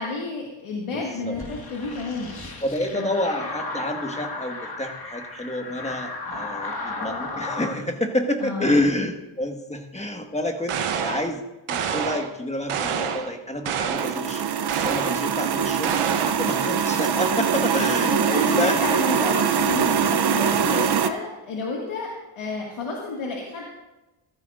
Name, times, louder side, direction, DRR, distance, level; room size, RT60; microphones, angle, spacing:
voice 1, 0.0-2.4 2.9-3.1 8.4-8.8 17.8-23.6, left 3 dB, 80° left, -3 dB, 2.1 m, -30 dB
voice 2, 0.9-1.4 2.6-14.5 14.8-18.8 20.3-20.9, left 1 dB, 15° left, 4 dB, 1.6 m, -28 dB
sound 1, 1.3-7.8, left 3 dB, 45° left, 1.9 m, -34 dB
sound 2, 10.7-11.3 11.7-12.3 12.7-13.3 13.6-14.2 14.7-15.2 15.8-16.5, right 7 dB, 85° right, 1.1 m, -27 dB
sound 3, 14.0-21.1, right 7 dB, 50° right, 0.7 m, -23 dB
15.5 x 13.5 x 2.5 m, 1.0 s
cardioid pair, 80°, 50 cm